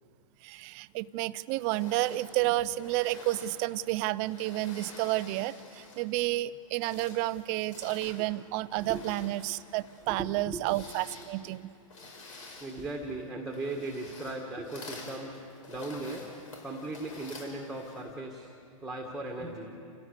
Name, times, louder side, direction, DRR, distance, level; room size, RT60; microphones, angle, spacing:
voice 1, 0.4-11.7, right 17 dB, 30° right, 16 dB, 0.4 m, -31 dB
sound 1, 1.6-6.2 6.6-18.2, left 3 dB, 70° left, 5.3 m, -49 dB
voice 2, 8.8-9.2 10.1-10.6 11.4-11.5 12.6-15.4 15.7-16.3 16.6-18.5 18.8-19.7, right 2 dB, ahead, 0 dB, 1.7 m, -38 dB
29.5 x 16.5 x 6.6 m, 2.4 s
hypercardioid pair, 145°, 18 cm